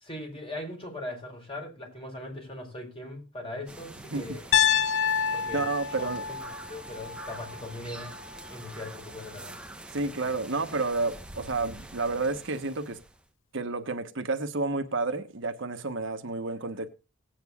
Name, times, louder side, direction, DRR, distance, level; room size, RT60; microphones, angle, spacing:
voice 1, 0.0-4.4 5.3-5.7 6.0-6.4 6.7-8.1 8.5-9.5, left 1 dB, 25° left, 4.4 m, -39 dB
sound 1, 3.7-13.3, right 2 dB, 5° right, 1.0 m, -45 dB
Piano, 4.5-8.6, left 8 dB, 65° left, 0.6 m, -28 dB
voice 2, 5.5-6.2 9.9-13.0 13.5-16.9, right 3 dB, 60° right, 1.1 m, -30 dB
18.0 x 9.0 x 2.4 m
head